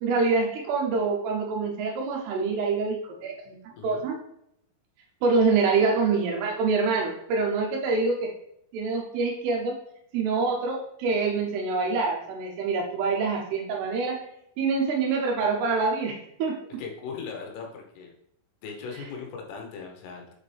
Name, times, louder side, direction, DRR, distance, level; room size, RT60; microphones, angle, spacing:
voice 1, 0.0-3.6 3.8-4.2 5.2-8.3 8.7-9.8 10.1-14.2 14.6-16.6, right 4 dB, 75° right, 0 dB, 2.5 m, -25 dB
voice 2, 3.7-4.1 16.8-18.1 18.6-20.3, left 5 dB, 90° left, 1 dB, 3.6 m, -38 dB
7.2 x 4.2 x 3.3 m, 0.75 s
omnidirectional pair, 5.5 m